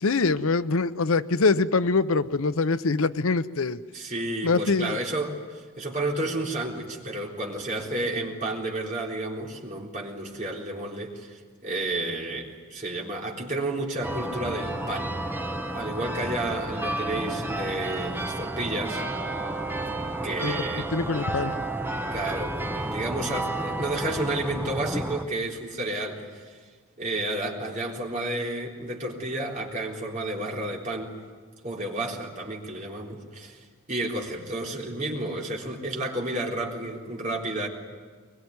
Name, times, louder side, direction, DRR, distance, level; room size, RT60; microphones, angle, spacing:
voice 1, 0.0-3.8 4.4-5.0 20.4-21.5, left 3 dB, 65° left, 13 dB, 0.7 m, -24 dB
voice 2, 3.9-15.2 15.7-19.0 20.2-20.9 21.9-26.6 27.0-31.2 31.6-33.6 33.9-37.7, right 2 dB, 35° right, -2 dB, 3.8 m, -31 dB
sound 1, 14.0-25.2, right 1 dB, 10° right, 1.0 m, -31 dB
22.5 x 22.0 x 9.6 m, 1.5 s
head